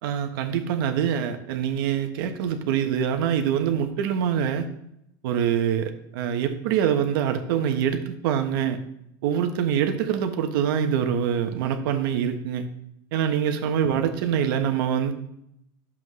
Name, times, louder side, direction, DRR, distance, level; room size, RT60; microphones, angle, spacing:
voice 1, 0.0-4.7 5.2-8.8 9.2-12.7 13.1-15.1, right 8 dB, 75° right, 7 dB, 1.2 m, -25 dB
11.0 x 7.4 x 3.2 m, 0.77 s
supercardioid pair, 140°, 12 cm